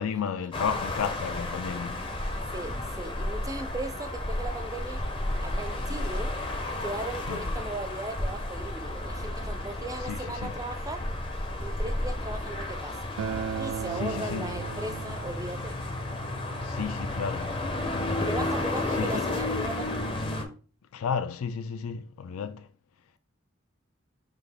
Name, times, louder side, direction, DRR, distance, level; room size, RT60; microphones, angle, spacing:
voice 1, 0.0-2.0 7.3-7.4 10.0-10.5 14.0-14.5 16.6-17.6 17.9-18.5 19.0-19.2 20.9-22.7, left 6 dB, 85° left, 0.4 m, -33 dB
sound 1, 0.5-20.4, left 1 dB, 25° left, 0.6 m, -32 dB
voice 2, 2.5-5.0 5.4-6.3 6.8-11.1 11.6-13.0 13.6-15.8 18.3-20.0, right 2 dB, 15° right, 0.4 m, -37 dB
Acoustic guitar, 13.2-18.4, right 7 dB, 80° right, 0.4 m, -39 dB
5.8 x 2.4 x 3.4 m
head